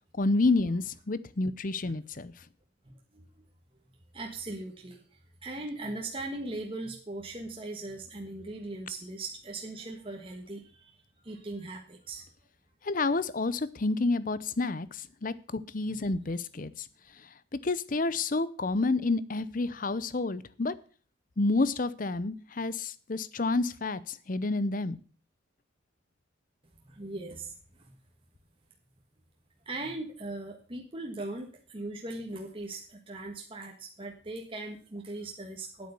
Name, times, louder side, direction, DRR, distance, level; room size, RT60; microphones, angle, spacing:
voice 1, 0.2-2.3 12.8-16.9 17.5-20.7 21.4-25.0, left 3 dB, 40° left, 17 dB, 0.7 m, -29 dB
voice 2, 2.8-3.3 4.1-12.3 15.9-16.0 26.8-28.0 29.6-35.9, right 2 dB, 25° right, 1 dB, 1.4 m, -39 dB
9.5 x 8.5 x 6.8 m, 0.41 s
head